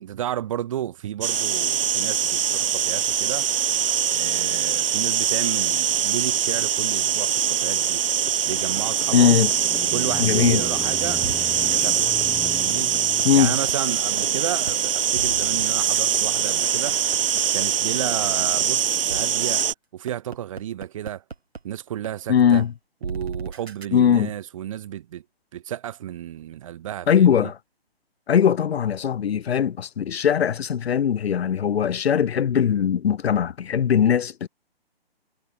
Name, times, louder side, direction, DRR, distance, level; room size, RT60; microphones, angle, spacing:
voice 1, 0.0-3.5 4.1-8.0 8.4-9.4 9.8-12.2 12.5-12.9 13.4-17.0 17.5-19.6 19.9-21.2 21.6-22.6 23.0-25.2 25.5-27.5, right 11 dB, 35° right, 0.9 m, -32 dB
sound 1, 1.2-19.7, right 8 dB, 65° right, 0.5 m, -23 dB
sound 2, 8.3-9.8 10.2-10.3 10.7-10.8 11.2-11.3 11.7-11.8 12.2-13.7 14.2-14.3 14.7-14.8 15.2-17.6 18.1-18.2 18.6-18.7 19.1-19.2 19.6-19.7 20.1-21.6 22.0-22.1 22.5-22.6 23.0-23.9, right 4 dB, 80° right, 1.2 m, -35 dB
sound 3, 8.9-13.8, left 3 dB, 5° left, 2.2 m, -38 dB
voice 2, 9.1-9.5 10.2-10.6 13.2-13.5 22.3-22.7 23.9-24.3 27.1-27.6 28.3-34.5, left 8 dB, 80° left, 0.5 m, -20 dB
figure-of-eight pair, 135°, 31 cm